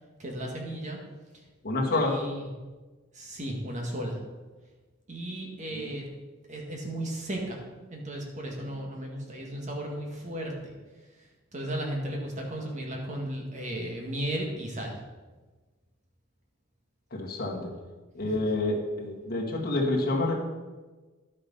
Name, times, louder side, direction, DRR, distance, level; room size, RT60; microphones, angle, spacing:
voice 1, 0.2-1.0 1.9-2.5 3.1-4.2 5.1-6.0 6.5-7.6 7.9-10.5 11.5-14.9, right 1 dB, 35° right, 0 dB, 1.9 m, -35 dB
voice 2, 1.6-2.2 5.7-5.9 17.1-17.7 18.1-20.4, left 2 dB, 45° left, -2 dB, 1.9 m, -28 dB
11.0 x 6.5 x 5.5 m, 1.3 s
head